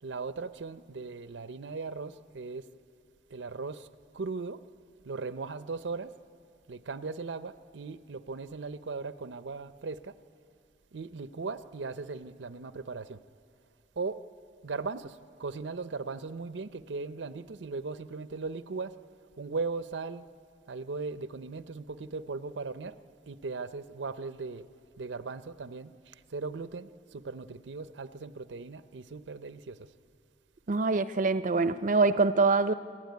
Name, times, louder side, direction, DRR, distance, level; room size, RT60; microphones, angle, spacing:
voice 1, 0.0-2.6 3.3-3.9 4.1-4.6 5.0-6.1 6.7-10.2 10.9-13.2 14.0-14.2 14.6-18.9 19.4-20.2 20.7-22.9 23.3-24.7 25.0-29.9, right 4 dB, 90° right, 0.6 m, -38 dB
voice 2, 30.7-32.7, right 3 dB, 45° right, 0.5 m, -24 dB
27.0 x 12.0 x 9.4 m
head